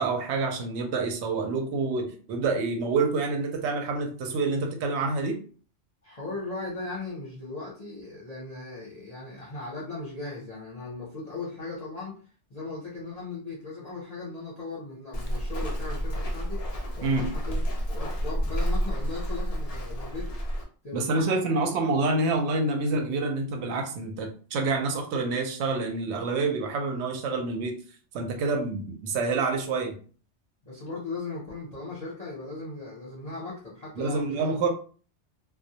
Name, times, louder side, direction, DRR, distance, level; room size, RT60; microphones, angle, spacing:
voice 1, 0.0-5.4 17.0-17.3 20.9-27.8 28.1-30.0 34.0-34.7, right 3 dB, 70° right, 3 dB, 0.8 m, -27 dB
voice 2, 6.0-12.2 12.5-16.7 17.0-20.4 20.8-21.5 30.6-34.6, left 3 dB, 40° left, -6 dB, 0.6 m, -38 dB
Walk footsteps, 15.1-20.6, equal, 75° left, 0.3 m, -30 dB
2.1 x 2.1 x 2.7 m, 0.41 s
omnidirectional pair, 1.3 m